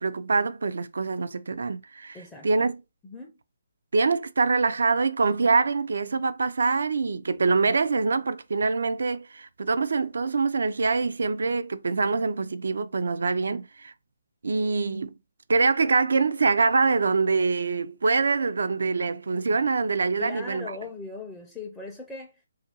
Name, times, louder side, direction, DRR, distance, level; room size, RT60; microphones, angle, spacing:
voice 1, 0.0-2.2 2.4-2.8 3.9-13.9 14.4-15.1 15.5-20.7, right 4 dB, 70° right, 0.4 m, -24 dB
voice 2, 2.1-2.7 3.0-3.3 20.2-22.5, left 3 dB, 10° left, 0.4 m, -39 dB
2.8 x 2.4 x 2.9 m
figure-of-eight pair, 145°, 0 cm